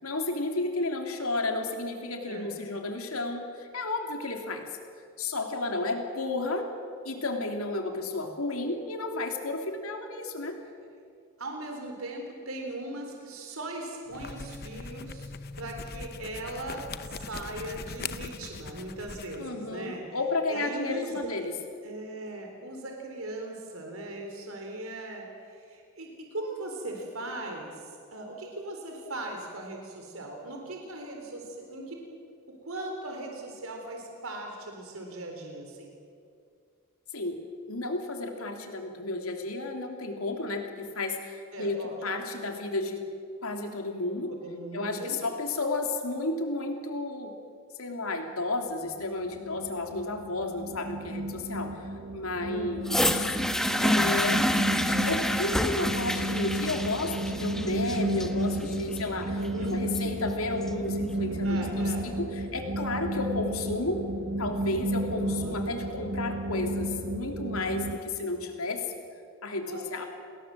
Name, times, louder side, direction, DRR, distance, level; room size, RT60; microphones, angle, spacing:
voice 1, 0.0-4.7 5.2-6.7 7.0-10.6 19.4-21.5 37.1-37.4 37.7-43.0 43.4-44.3 44.7-47.3 47.8-51.8 52.1-53.3 53.8-54.5 54.8-64.0 64.4-68.9 69.4-70.1, left 2 dB, 80° left, 4 dB, 3.2 m, -32 dB
voice 2, 11.4-15.3 15.6-20.1 20.5-21.4 21.8-32.0 32.6-35.9 41.5-42.0 44.3-45.2 52.4-52.8 59.4-59.8 61.4-62.1 65.2-65.9 69.7-70.1, right 1 dB, 75° right, 2 dB, 3.9 m, -39 dB
sound 1, 14.1-19.4, left 4 dB, 45° left, 0.9 m, -40 dB
sound 2, 49.0-68.0, right 1 dB, 50° right, 1.0 m, -33 dB
sound 3, 52.9-60.9 61.7-61.8, left 1 dB, ahead, 1.2 m, -28 dB
29.0 x 20.5 x 7.7 m, 2.3 s
head